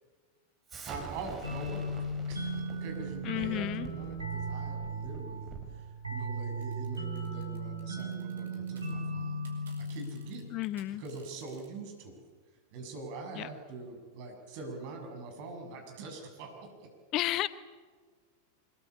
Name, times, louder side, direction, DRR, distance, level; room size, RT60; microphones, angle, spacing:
Explosion, 0.7-5.8, right 4 dB, 20° right, 5.6 m, -47 dB
voice 1, 0.9-1.9 2.3-9.4 9.9-10.4 11.0-12.2 12.7-16.9, right 3 dB, 45° right, 3 dB, 6.9 m, -43 dB
sound 1, 1.4-10.8, right 2 dB, 85° right, 4.2 m, -37 dB
voice 2, 3.2-3.9 10.5-11.0 13.4-13.5 17.1-17.5, left 15 dB, 35° left, 16 dB, 0.9 m, -32 dB
sound 2, 6.6-8.9 9.2-11.7, right 5 dB, 65° right, 5.4 m, -59 dB
25.0 x 21.5 x 8.7 m, 1.5 s
figure-of-eight pair, 90°, 0 cm